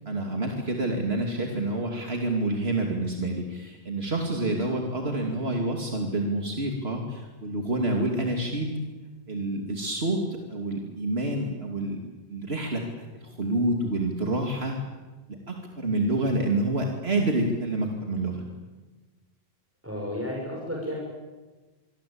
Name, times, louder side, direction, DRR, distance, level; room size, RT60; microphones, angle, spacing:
voice 1, 0.1-8.8 9.3-12.0 12.3-14.7 15.3-18.4, right 2 dB, 75° right, 1 dB, 3.0 m, -28 dB
voice 2, 19.8-20.9, equal, 15° right, -2 dB, 5.7 m, -32 dB
26.5 x 23.5 x 8.7 m, 1.3 s
omnidirectional pair, 1.1 m